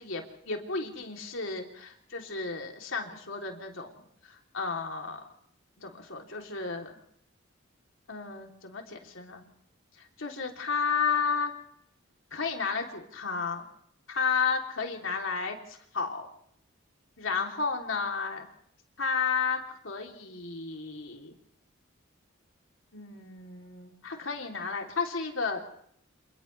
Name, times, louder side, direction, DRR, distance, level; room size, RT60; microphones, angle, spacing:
voice 1, 0.0-5.2 5.8-7.0 8.1-9.4 10.2-11.5 12.3-13.6 14.2-16.3 17.2-18.4 19.0-19.6 19.8-21.3 22.9-25.6, left 5 dB, 75° left, 2 dB, 3.3 m, -32 dB
28.0 x 28.0 x 3.4 m, 0.66 s
head